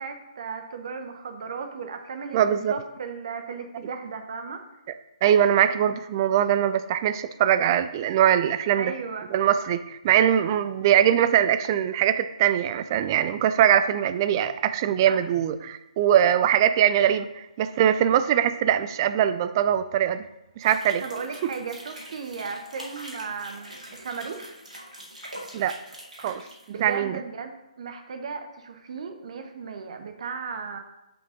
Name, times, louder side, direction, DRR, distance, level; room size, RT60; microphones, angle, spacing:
voice 1, 0.0-4.6 8.7-9.3 15.1-15.2 21.0-24.6 26.7-30.8, right 5 dB, 55° right, 7 dB, 0.9 m, -36 dB
voice 2, 2.3-2.7 5.2-8.9 9.3-20.2 20.6-21.0 25.5-25.7 26.2-27.2, right 10 dB, 35° right, 12 dB, 0.4 m, -22 dB
sound 1, 20.6-26.9, equal, 85° right, 2.2 m, -43 dB
5.4 x 5.3 x 5.1 m, 0.94 s
figure-of-eight pair, 135°, 4 cm